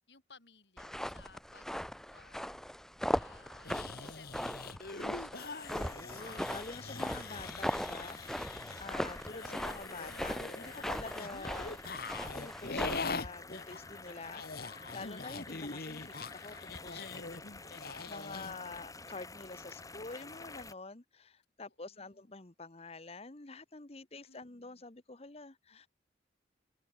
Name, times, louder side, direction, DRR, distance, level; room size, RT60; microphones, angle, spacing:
voice 1, 0.1-1.7 2.1-6.3 21.9-22.3 24.2-24.9 25.7-25.9, left 5 dB, 80° left, 5.2 m, -62 dB
sound 1, 0.8-13.2, equal, 5° left, 1.0 m, -39 dB
sound 2, 3.6-8.9 9.3-18.5, left 4 dB, 55° left, 1.6 m, -43 dB
sound 3, 5.4-20.7, left 3 dB, 20° left, 3.7 m, -50 dB
voice 2, 5.7-11.8 12.4-25.9, left 3 dB, 35° left, 1.1 m, -47 dB
head